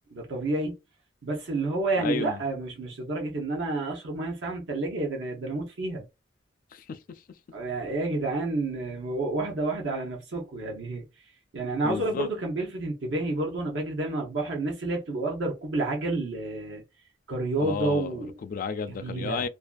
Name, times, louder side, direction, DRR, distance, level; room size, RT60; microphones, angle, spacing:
voice 1, 0.1-0.7 1.2-6.0 7.5-11.0 11.5-16.8 17.3-18.3 18.9-19.4, right 2 dB, 75° right, 0.7 m, -30 dB
voice 2, 2.0-2.4 6.7-7.2 11.8-12.3 17.6-19.5, left 5 dB, 50° left, 0.3 m, -33 dB
2.5 x 2.4 x 2.2 m
head